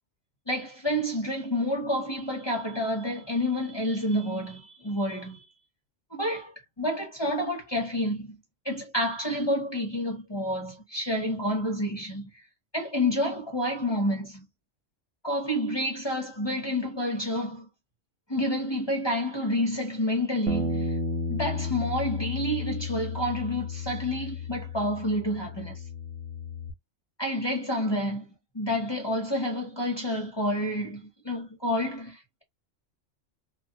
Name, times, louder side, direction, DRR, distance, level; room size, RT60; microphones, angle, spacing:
voice 1, 0.5-5.4 6.1-8.4 8.6-12.4 12.7-14.5 15.2-17.7 18.3-21.0 21.3-25.8 27.2-28.3 28.5-32.4, equal, 25° left, 0.8 m, -29 dB
Bass guitar, 20.5-26.7, left 3 dB, 80° right, 1.0 m, -33 dB
2.8 x 2.4 x 2.7 m
omnidirectional pair, 1.3 m